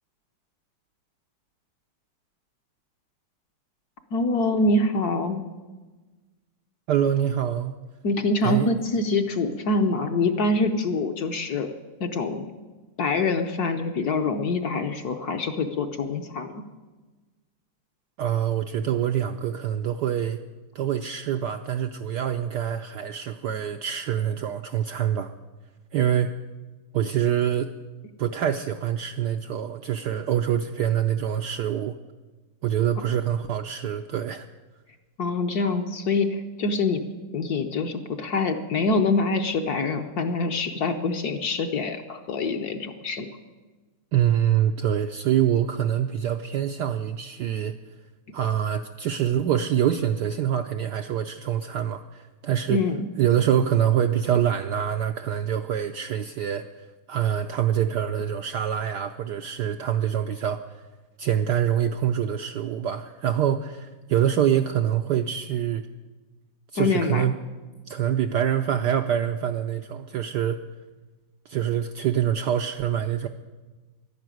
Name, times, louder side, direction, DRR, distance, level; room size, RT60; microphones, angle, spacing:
voice 1, 4.1-5.4 8.0-11.7 12.0-12.5 13.0-16.6 35.2-37.0 37.3-43.3 52.7-53.1 66.8-67.2, left 3 dB, 60° left, 6 dB, 1.1 m, -25 dB
voice 2, 6.9-7.7 8.4-8.7 18.2-20.4 20.7-25.3 25.9-26.3 26.9-27.7 28.2-32.0 32.6-34.5 44.1-47.7 48.3-52.8 53.2-56.7 57.1-60.6 61.2-65.9 66.7-67.3 67.9-70.6 71.5-73.3, right 10 dB, 75° right, 6 dB, 1.0 m, -25 dB
12.0 x 11.0 x 9.2 m, 1.3 s
omnidirectional pair, 2.4 m